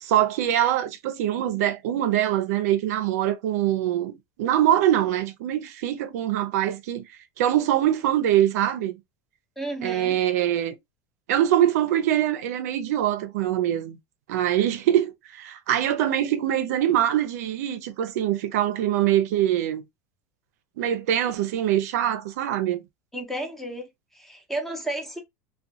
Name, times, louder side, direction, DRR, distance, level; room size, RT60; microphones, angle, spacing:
voice 1, 0.0-7.0 7.4-9.0 9.8-10.7 11.3-14.0 14.3-19.8 20.8-22.8, right 11 dB, 80° right, 0.4 m, -23 dB
voice 2, 9.6-10.2 23.1-23.9 24.1-25.2, right 1 dB, 5° left, 0.7 m, -32 dB
2.4 x 2.2 x 2.6 m
supercardioid pair, 140°, 8 cm